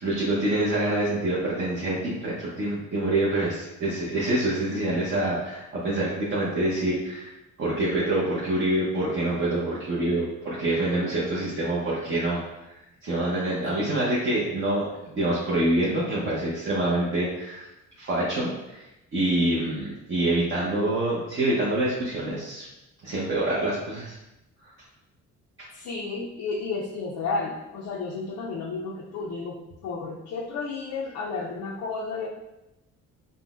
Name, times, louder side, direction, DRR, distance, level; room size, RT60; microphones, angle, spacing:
voice 1, 0.0-7.3 7.6-17.7 18.0-22.7 23.0-24.2 24.6-24.7 25.6-25.7, right 1 dB, 40° right, -7 dB, 0.8 m, -26 dB
voice 2, 25.7-32.3, left 4 dB, 65° left, -3 dB, 0.5 m, -32 dB
3.8 x 2.1 x 2.4 m, 0.93 s
cardioid pair, 90°, 30 cm